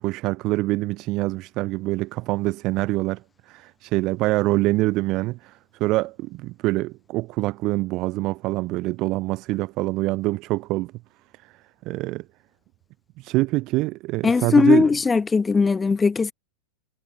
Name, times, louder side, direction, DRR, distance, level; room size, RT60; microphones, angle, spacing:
voice 1, 0.0-10.9 11.4-12.3 13.2-14.9, right 20 dB, 40° right, 0.4 m, -25 dB
voice 2, 14.2-16.3, left 4 dB, 15° left, 0.7 m, -19 dB
figure-of-eight pair, 90°, 0 cm